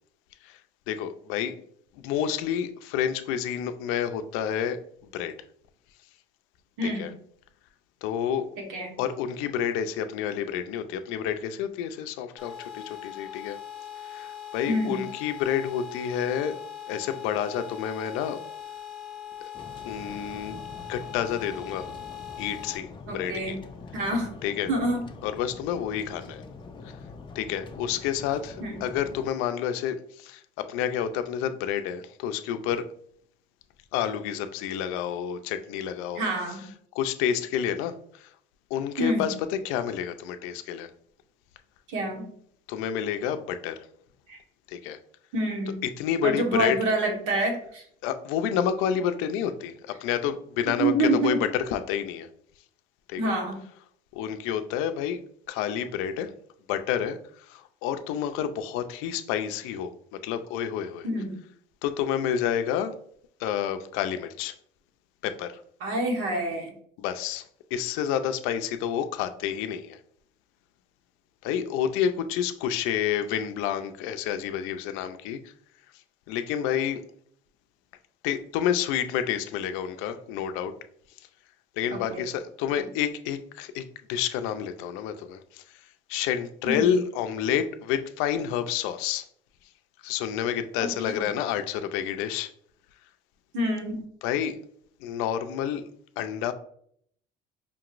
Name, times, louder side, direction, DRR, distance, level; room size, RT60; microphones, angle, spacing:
voice 1, 0.9-1.6 2.0-4.8 5.1-5.3 6.8-7.1 8.0-8.5 9.0-13.6 14.0-16.6 16.9-18.4 19.8-20.6 20.9-21.9 22.4-23.6 24.4-24.7 25.2-26.4 26.8-27.0 27.3-30.4 30.7-32.8 33.9-36.3 36.9-38.3 38.7-39.3 39.6-40.9 42.7-43.9 44.7-45.0 45.8-46.8 48.0-51.3 51.7-52.3 53.1-53.3 54.1-55.2 55.5-56.3 56.7-59.9 60.2-61.1 61.8-62.9 63.4-64.5 65.2-65.6 67.0-67.5 67.7-70.0 71.4-75.5 76.3-77.0 78.2-80.7 81.8-83.8 84.1-85.8 86.1-89.3 90.0-92.5 94.2-94.6 95.0-95.8 96.2-96.5, left 9 dB, 80° left, 9 dB, 0.5 m, -29 dB
voice 2, 6.8-7.1 8.7-9.0 14.7-15.1 23.1-23.5 23.9-24.3 24.7-25.1 28.6-28.7 36.1-36.7 39.0-39.3 41.9-42.3 44.3-44.4 45.3-45.8 46.2-47.8 50.8-51.4 53.2-53.6 61.0-61.4 65.8-66.7 81.9-82.2 82.7-82.8 86.6-86.9 90.8-91.2 93.5-94.0, right 1 dB, 85° right, 1 dB, 1.4 m, -27 dB
sound 1, 12.4-22.8, left 9 dB, ahead, 1.0 m, -41 dB
sound 2, 19.5-29.3, left 4 dB, 25° left, 0.4 m, -44 dB
5.1 x 2.9 x 2.5 m, 0.65 s
cardioid pair, 115°, 21 cm